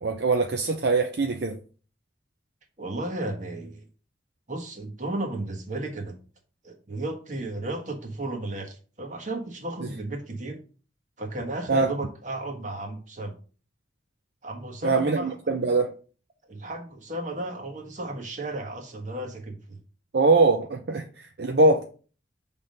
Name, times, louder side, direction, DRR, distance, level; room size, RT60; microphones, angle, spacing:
voice 1, 0.0-1.6 11.7-11.9 14.8-15.9 20.1-21.8, right 3 dB, 65° right, 0.6 m, -22 dB
voice 2, 2.8-3.9 4.5-6.1 6.6-10.6 11.2-13.4 14.4-15.4 16.5-19.8, right 2 dB, 45° right, 1.4 m, -34 dB
5.9 x 3.6 x 5.2 m
head